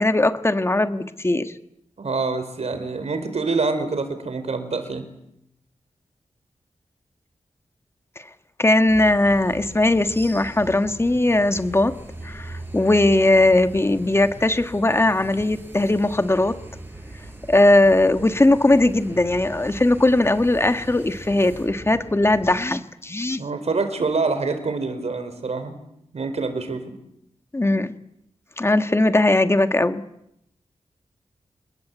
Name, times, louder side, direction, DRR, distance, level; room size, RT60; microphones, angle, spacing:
voice 1, 0.0-1.5 8.6-11.9 12.2-16.6 17.5-23.4 27.5-27.9 28.6-30.0, left 2 dB, 20° left, 9 dB, 1.5 m, -19 dB
voice 2, 2.0-5.1 17.8-17.9 23.4-25.8 26.1-26.9, right 4 dB, 65° right, 9 dB, 4.6 m, -26 dB
sound 1, 8.9-22.6, right 2 dB, 15° right, 7.6 m, -40 dB
28.0 x 21.0 x 8.4 m, 0.78 s
wide cardioid pair, 115°, 12 cm